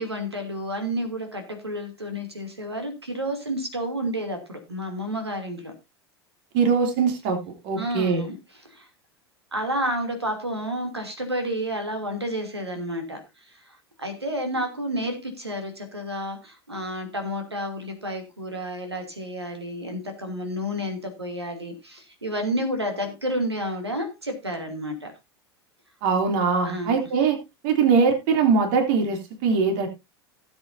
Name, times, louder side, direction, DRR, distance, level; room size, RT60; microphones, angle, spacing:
voice 1, 0.0-5.7 7.7-8.9 9.5-25.1 26.6-26.9, equal, 85° right, 5 dB, 2.8 m, -30 dB
voice 2, 6.5-7.4 7.6-8.2 26.0-27.4 27.6-29.9, right 5 dB, 50° right, 4 dB, 3.0 m, -21 dB
17.5 x 8.0 x 2.7 m, 0.23 s
figure-of-eight pair, 80°, 13 cm